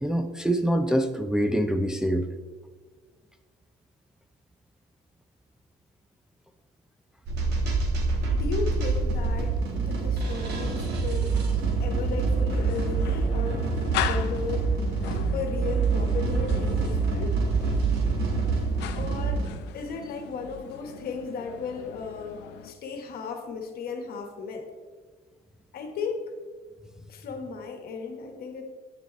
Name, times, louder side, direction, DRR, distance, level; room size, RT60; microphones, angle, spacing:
voice 1, 0.0-2.3, right 1 dB, 5° right, 5 dB, 0.4 m, -25 dB
sound 1, 7.3-19.5, right 4 dB, 75° right, 1.4 m, -26 dB
voice 2, 8.3-14.7 15.3-17.3 18.9-19.5 19.7-24.7 25.7-26.3 27.1-28.6, left 5 dB, 65° left, 4 dB, 1.3 m, -35 dB
sound 2, 12.5-22.7, left 11 dB, 90° left, 0.6 m, -38 dB
9.2 x 7.0 x 3.1 m, 1.5 s
cardioid pair, 110°, 17 cm